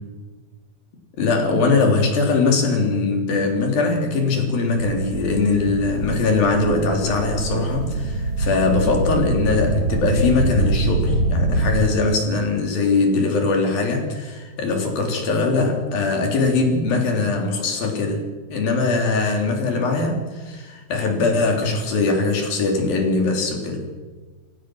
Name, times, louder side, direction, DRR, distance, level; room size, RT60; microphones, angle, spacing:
voice 1, 1.2-18.2 18.5-23.8, left 3 dB, 65° left, 2 dB, 5.0 m, -21 dB
sound 1, 4.8-11.9, right 2 dB, 45° right, 2.7 m, -24 dB
28.5 x 16.5 x 6.2 m, 1.3 s
omnidirectional pair, 4.6 m